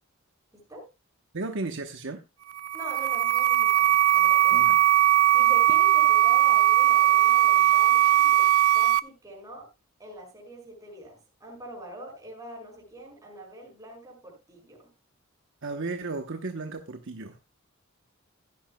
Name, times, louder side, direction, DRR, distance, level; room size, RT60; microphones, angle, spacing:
voice 1, 0.5-0.9 2.7-4.7 5.3-8.5 8.7-9.7 10.0-14.8, right 1 dB, 15° right, -1 dB, 5.9 m, -44 dB
voice 2, 1.3-2.2 4.5-4.8 15.6-17.4, right 3 dB, 65° right, 5 dB, 1.0 m, -34 dB
sound 1, 2.5-9.0, right 13 dB, 85° right, 0.5 m, -20 dB
15.5 x 10.5 x 2.3 m, 0.24 s
head